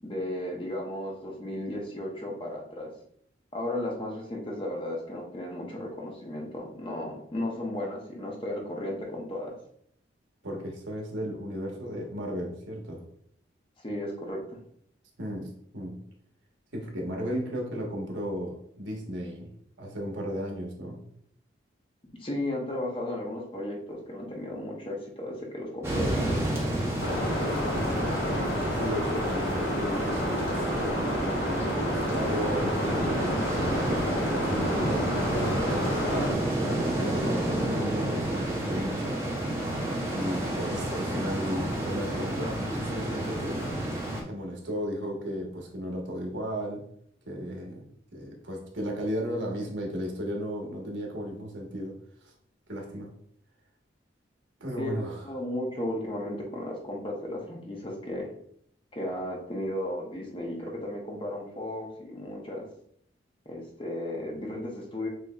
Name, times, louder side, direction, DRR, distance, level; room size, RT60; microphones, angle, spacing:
voice 1, 0.0-2.9 3.5-9.6 13.8-14.4 22.2-26.4 54.8-54.9 55.2-58.3 58.9-62.7 63.5-65.1, left 1 dB, 25° left, -1 dB, 0.8 m, -34 dB
voice 2, 10.4-13.0 15.2-16.0 16.7-19.5 19.8-21.0 27.7-28.1 28.4-31.4 31.9-32.8 33.4-36.3 36.9-38.4 38.7-39.2 40.1-43.6 44.3-46.8 47.2-51.9 52.2-52.3 52.7-53.1 54.6-55.2, equal, 75° right, 0 dB, 1.2 m, -35 dB
sound 1, 25.8-44.2, right 1 dB, 15° right, 0.8 m, -30 dB
sound 2, 27.0-36.3, left 1 dB, 75° left, 1.7 m, -30 dB
6.5 x 2.9 x 2.4 m, 0.67 s
head